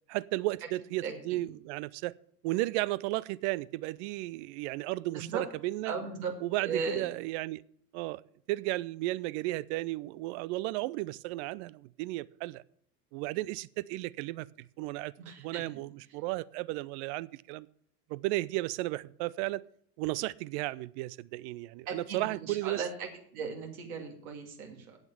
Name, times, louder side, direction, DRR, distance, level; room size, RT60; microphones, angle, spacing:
voice 1, 0.1-2.1 2.4-5.9 6.4-7.6 7.9-8.2 8.5-12.6 13.1-15.1 15.4-17.7 18.1-19.6 20.0-22.9, right 19 dB, 50° right, 21 dB, 0.5 m, -34 dB
voice 2, 5.9-6.3 6.6-7.1 15.3-15.6 21.9-23.1 23.3-25.0, right 5 dB, 65° right, 2 dB, 2.5 m, -37 dB
8.9 x 7.9 x 7.1 m, 0.64 s
figure-of-eight pair, 65°, 45 cm